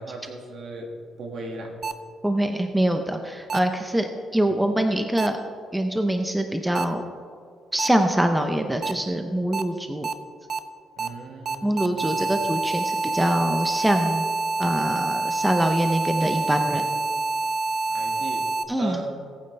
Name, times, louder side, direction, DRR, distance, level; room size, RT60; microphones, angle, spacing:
voice 1, 0.0-1.7 4.3-4.5 11.0-12.3 17.9-19.2, right 2 dB, 55° right, 2 dB, 1.9 m, -37 dB
sound 1, 1.8-1.9 3.5-3.6 5.2-5.3 6.7-6.8 7.8-7.9 8.8-8.9 9.5-9.6 10.0-10.1 10.5-10.6 11.0-11.1 11.5-18.6, right 3 dB, 40° right, 0.7 m, -27 dB
voice 2, 2.2-5.4 5.7-7.0 7.7-10.1 11.6-14.2 14.6-16.9 18.7-19.0, right 1 dB, 5° right, 5 dB, 0.6 m, -24 dB
19.0 x 8.9 x 3.3 m, 2.2 s
cardioid pair, 145°, 0 cm